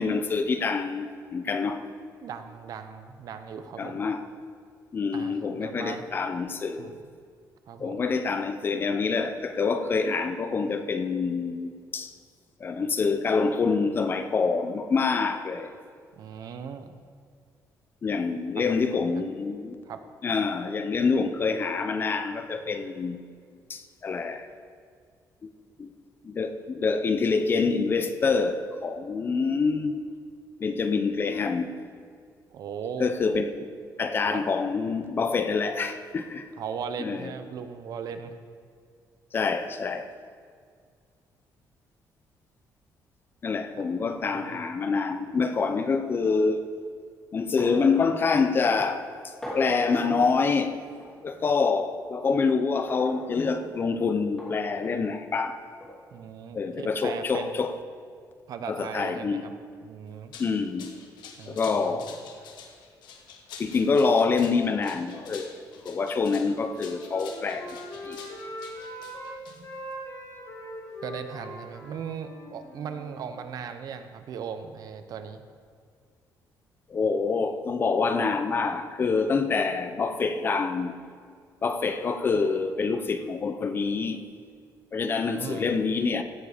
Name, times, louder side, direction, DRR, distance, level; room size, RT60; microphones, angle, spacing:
voice 1, 0.0-1.8 3.8-4.3 4.9-6.9 7.8-12.1 12.6-15.7 18.0-19.7 20.2-23.2 23.7-24.5 25.4-25.5 25.8-25.9 26.2-30.0 30.6-31.7 33.0-33.5 34.0-36.5 37.0-37.3 39.3-40.1 43.4-46.7 47.3-50.8 51.2-55.6 56.5-57.7 58.7-59.4 60.4-60.9 61.5-62.2 63.6-65.6 65.8-67.8 68.0-68.2 76.9-81.0 81.6-84.2 84.9-86.2, left 4 dB, 30° left, 0.6 m, -26 dB
voice 2, 2.2-4.1 5.1-6.0 6.8-7.0 7.7-8.0 16.2-16.9 18.6-18.8 19.9-20.0 32.5-33.1 34.3-34.4 36.6-38.4 44.2-44.6 56.1-57.6 58.5-59.5 59.8-60.3 61.4-62.1 69.5-69.7 71.0-75.4 85.3-85.7, right 7 dB, 55° right, 0.8 m, -38 dB
sound 1, 47.6-47.9 48.3-48.4 49.4-49.9 51.0-51.2 52.9-53.2 54.4-54.6 55.8-56.0, equal, 10° left, 3.0 m, -39 dB
sound 2, 60.1-69.9, left 6 dB, 85° left, 1.3 m, -47 dB
Wind instrument woodwind instrument, 66.7-69.3 69.6-73.2, equal, 45° left, 2.9 m, -41 dB
16.0 x 7.4 x 5.0 m
cardioid pair, 165°, 7 cm